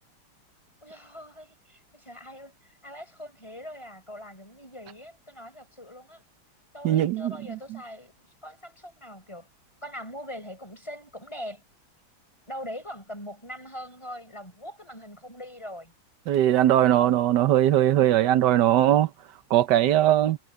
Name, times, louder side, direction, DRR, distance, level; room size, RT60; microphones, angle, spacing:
voice 1, 0.8-6.2 6.7-9.5 9.8-11.6 12.5-15.9 16.8-17.2, equal, 15° left, 5.9 m, -42 dB
voice 2, 6.8-7.8 16.3-19.1 19.5-20.4, right 12 dB, 65° right, 1.4 m, -20 dB
omnidirectional pair, 2.2 m